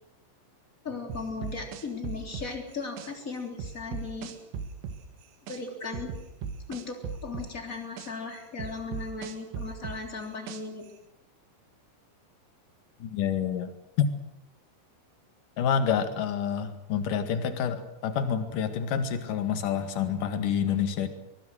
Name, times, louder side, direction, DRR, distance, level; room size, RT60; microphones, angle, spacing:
voice 1, 0.8-4.3 5.5-6.1 6.7-10.8, left 4 dB, 20° left, 3 dB, 3.3 m, -37 dB
sound 1, 1.1-3.1 3.6-5.6 5.9-8.1 8.6-10.9, right 6 dB, 75° right, 4.1 m, -37 dB
voice 2, 13.0-13.7 14.0-14.1 15.6-21.1, left 7 dB, 55° left, 8 dB, 2.9 m, -28 dB
24.0 x 23.0 x 6.5 m, 0.85 s
omnidirectional pair, 5.4 m